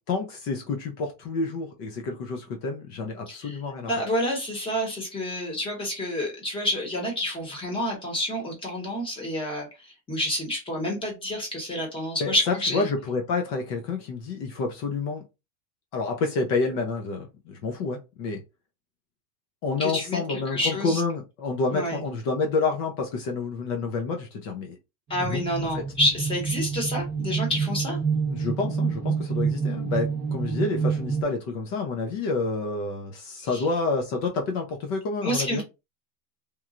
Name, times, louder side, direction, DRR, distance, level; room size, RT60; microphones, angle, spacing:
voice 1, 0.1-3.9 12.2-12.3 12.7-15.2 15.9-18.4 19.6-24.8 25.2-25.4 25.7-25.8 28.3-35.6, left 3 dB, 35° left, 0.4 m, -29 dB
voice 2, 3.3-3.6 3.9-9.7 10.1-12.8 19.8-21.0 21.7-22.0 25.1-28.0 33.5-33.6 35.2-35.6, left 1 dB, 10° left, 0.9 m, -28 dB
sound 1, 25.1-31.2, right 5 dB, 20° right, 0.7 m, -28 dB
3.0 x 2.2 x 2.4 m
supercardioid pair, 150°, 46 cm